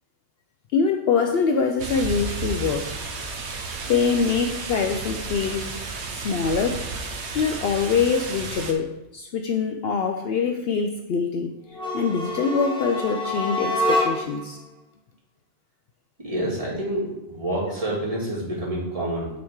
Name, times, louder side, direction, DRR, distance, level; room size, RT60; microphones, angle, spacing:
voice 1, 0.7-2.9 3.9-5.7 6.1-6.8 7.3-11.5 11.9-14.6, left 5 dB, 65° left, 4 dB, 0.7 m, -24 dB
sound 1, 1.8-8.7, right 3 dB, 65° right, 1.0 m, -32 dB
sound 2, 11.7-14.5, left 1 dB, 5° left, 1.1 m, -26 dB
voice 2, 16.2-19.3, right 1 dB, 30° right, -5 dB, 1.8 m, -28 dB
8.3 x 3.6 x 4.7 m, 0.92 s
omnidirectional pair, 1.3 m